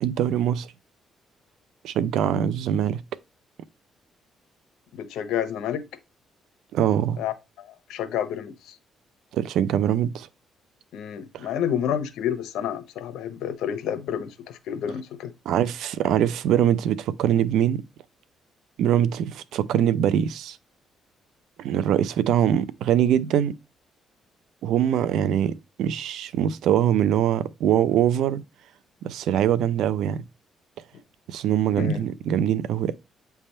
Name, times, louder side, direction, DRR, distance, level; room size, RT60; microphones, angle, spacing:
voice 1, 0.0-0.7 1.8-3.0 6.7-7.2 9.3-10.3 11.3-11.5 15.5-17.8 18.8-20.6 21.6-23.5 24.6-28.4 29.0-30.2 31.3-32.9, right 10 dB, 80° right, 0.6 m, -23 dB
voice 2, 4.9-5.8 7.2-8.8 10.9-15.3 31.7-32.0, left 9 dB, 85° left, 0.9 m, -30 dB
8.4 x 3.5 x 4.3 m
cardioid pair, 90°, 0 cm